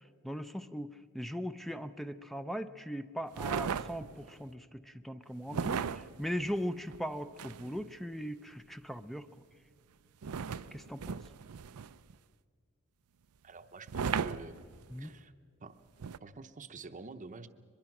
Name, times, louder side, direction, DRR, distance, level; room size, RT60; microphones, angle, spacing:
voice 1, 0.2-9.3 10.7-11.2 14.9-15.1, equal, ahead, 11 dB, 0.5 m, -39 dB
sound 1, 3.3-4.3 5.5-7.9 10.2-12.1 13.9-15.1 16.0-16.2, right 6 dB, 85° right, 0.5 m, -37 dB
voice 2, 13.4-14.6 15.0-15.3 15.6-15.8 16.2-17.5, right 3 dB, 35° right, 8 dB, 0.8 m, -47 dB
23.0 x 22.0 x 5.9 m, 2.1 s
head